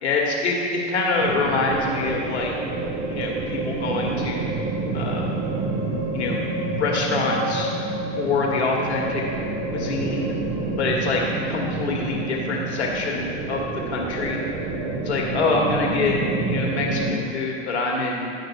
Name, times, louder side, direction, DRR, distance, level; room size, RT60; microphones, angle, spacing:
voice 1, 0.0-2.5 3.1-4.6 4.9-5.3 6.1-6.4 6.8-7.7 8.2-9.2 9.7-10.4 10.8-14.4 15.0-18.3, left 3 dB, 65° left, -1 dB, 1.5 m, -25 dB
sound 1, 1.2-17.1, right 2 dB, 40° right, 1.3 m, -28 dB
10.5 x 5.0 x 4.7 m, 2.4 s
figure-of-eight pair, 80°, 35 cm